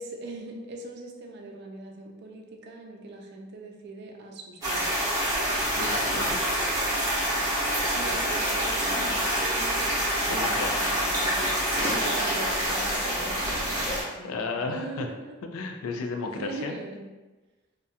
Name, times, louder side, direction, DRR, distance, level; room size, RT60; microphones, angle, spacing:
voice 1, 0.0-5.2 7.9-10.1 10.5-15.4 16.2-17.1, right 2 dB, 55° right, 2 dB, 0.4 m, -41 dB
sound 1, 4.6-14.0, equal, 15° right, 0.6 m, -26 dB
voice 2, 5.8-6.4 10.2-11.1 14.2-15.1 15.5-16.7, left 3 dB, 90° left, 4 dB, 0.3 m, -33 dB
2.3 x 2.2 x 2.7 m, 1.2 s
head